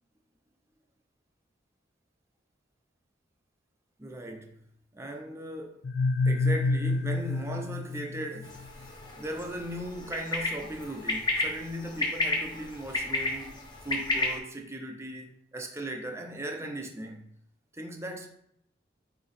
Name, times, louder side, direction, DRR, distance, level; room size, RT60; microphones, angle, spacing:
voice 1, 4.0-4.6 4.9-5.8 6.2-8.6 9.2-17.3 17.7-18.3, right 1 dB, 15° right, 0.7 m, -38 dB
sound 1, 5.8-8.7, left 2 dB, 60° left, 0.4 m, -28 dB
sound 2, 8.4-14.4, left 2 dB, 25° left, 1.1 m, -32 dB
8.6 x 3.0 x 4.3 m
head